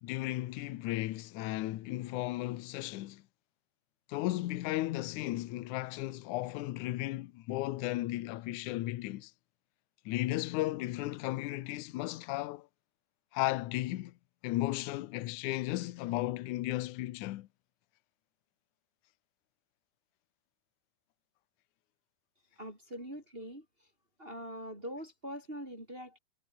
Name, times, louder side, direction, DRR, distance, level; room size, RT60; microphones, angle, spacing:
voice 1, 0.0-3.2 4.1-9.3 10.1-12.7 13.3-14.1 14.4-17.5, left 17 dB, 70° left, 2.1 m, -35 dB
voice 2, 22.6-23.9 24.2-26.2, equal, 15° right, 6.4 m, -43 dB
omnidirectional pair, 4.1 m